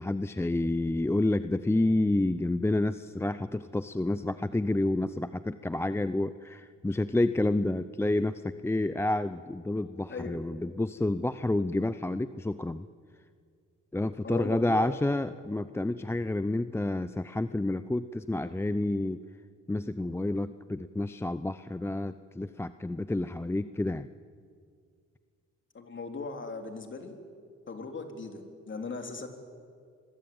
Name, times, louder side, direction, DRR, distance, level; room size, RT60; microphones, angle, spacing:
voice 1, 0.0-12.9 13.9-19.2 19.7-24.1, left 2 dB, 10° left, 13 dB, 0.6 m, -29 dB
voice 2, 14.2-14.9 25.7-27.2 27.7-29.3, left 4 dB, 40° left, 5 dB, 3.9 m, -38 dB
27.5 x 22.5 x 8.9 m, 2.2 s
cardioid pair, 90°, 30 cm